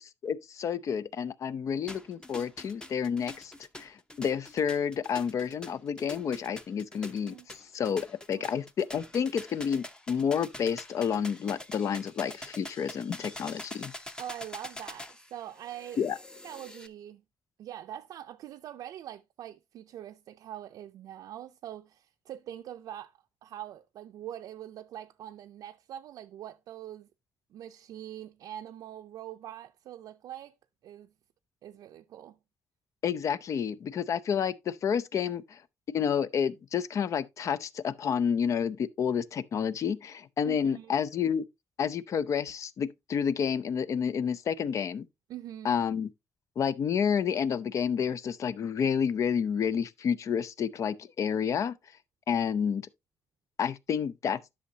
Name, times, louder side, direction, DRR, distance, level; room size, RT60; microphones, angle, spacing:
voice 1, 0.2-13.9 16.0-16.2 33.0-35.6 35.9-41.5 41.8-45.1 45.6-46.1 46.6-51.7 52.3-52.9 53.6-54.4, left 7 dB, 55° left, 0.5 m, -30 dB
sound 1, 1.9-16.9, left 1 dB, 15° left, 0.8 m, -45 dB
voice 2, 14.2-16.0 16.4-17.2 17.6-27.1 27.5-30.6 30.8-31.1 31.6-32.4 40.4-40.9 45.3-45.8, right 11 dB, 85° right, 0.5 m, -43 dB
11.0 x 6.3 x 2.7 m
cardioid pair, 130°, 6 cm